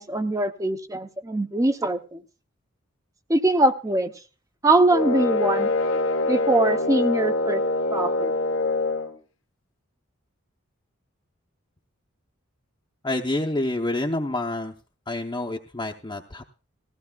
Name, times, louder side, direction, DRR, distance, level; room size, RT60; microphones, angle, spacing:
voice 1, 0.0-2.2 3.3-4.1 4.6-5.7 6.3-7.6 7.9-8.3, right 2 dB, 15° right, 9 dB, 0.6 m, -22 dB
sound 1, 4.9-9.2, left 2 dB, 75° left, 1.1 m, -24 dB
voice 2, 13.0-14.7 15.1-16.4, left 2 dB, 20° left, 0 dB, 0.7 m, -28 dB
19.0 x 15.5 x 2.3 m, 0.35 s
head